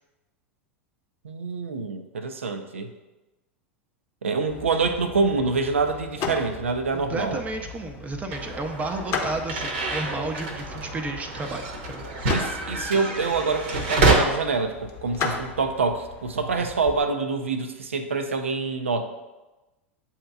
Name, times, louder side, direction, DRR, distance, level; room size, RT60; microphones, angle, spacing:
voice 1, 1.2-2.9 4.2-7.4 12.3-19.0, right 4 dB, 80° right, 8 dB, 0.5 m, -26 dB
sound 1, 4.5-17.0, left 5 dB, 40° left, 0.7 m, -37 dB
voice 2, 6.9-12.1, right 2 dB, 20° right, 5 dB, 0.6 m, -32 dB
sound 2, 8.3-14.2, right 3 dB, 60° right, 0.8 m, -27 dB
8.3 x 2.8 x 2.3 m, 1.1 s
figure-of-eight pair, 85°, 7 cm